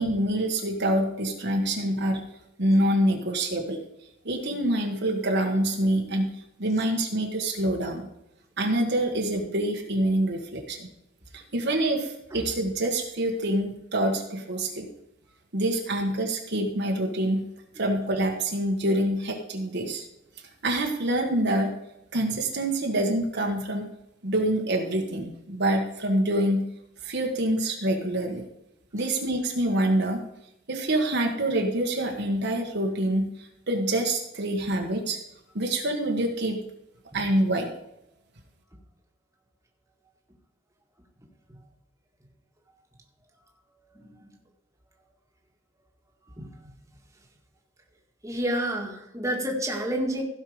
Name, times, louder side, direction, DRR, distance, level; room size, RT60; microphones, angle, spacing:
voice 1, 0.0-2.2 2.6-3.8 4.2-6.3 6.6-8.1 8.6-10.9 11.5-14.9 15.5-17.4 17.7-20.1 20.6-21.7 22.1-23.9 24.2-26.6 27.0-28.4 28.9-30.2 30.7-33.3 33.7-35.2 35.5-36.6 37.1-37.7, right 1 dB, 60° right, 2 dB, 1.6 m, -26 dB
voice 2, 44.0-44.3 46.4-46.5 48.2-50.2, right 1 dB, 15° right, 0 dB, 1.9 m, -29 dB
16.0 x 5.7 x 5.1 m, 0.83 s
head